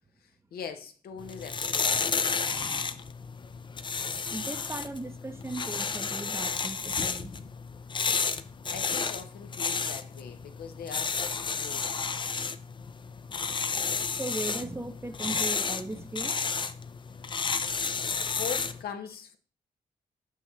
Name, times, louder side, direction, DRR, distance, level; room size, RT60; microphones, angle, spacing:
voice 1, 0.5-2.1 8.7-12.1 18.3-19.4, left 7 dB, 85° left, 0.8 m, -41 dB
sound 1, 1.2-18.8, left 5 dB, 30° left, 0.4 m, -32 dB
voice 2, 2.0-3.1 3.5-3.6 4.3-7.3 14.1-16.4, right 2 dB, 15° right, 0.6 m, -38 dB
5.6 x 5.6 x 3.1 m
cardioid pair, 80°, 15 cm